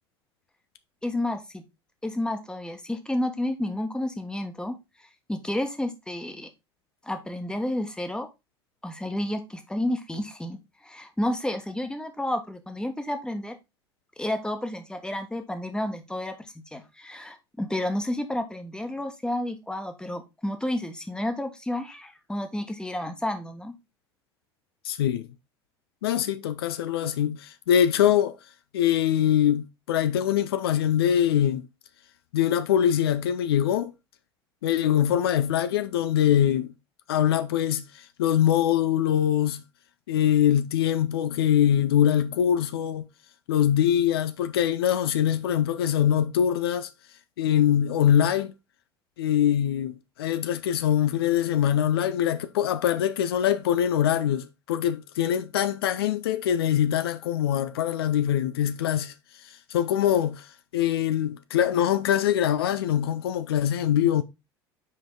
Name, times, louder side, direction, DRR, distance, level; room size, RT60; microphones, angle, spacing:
voice 1, 1.0-1.6 2.0-6.5 7.0-8.3 8.8-13.6 14.2-23.7, left 1 dB, 5° left, 1.2 m, -31 dB
voice 2, 24.8-25.3 26.0-28.4 28.7-31.7 32.3-33.9 34.6-36.7 37.1-39.6 40.1-43.1 43.5-46.9 47.4-48.5 49.2-59.1 59.4-64.2, left 10 dB, 65° left, 0.5 m, -23 dB
5.6 x 5.0 x 3.8 m
figure-of-eight pair, 65°, 13 cm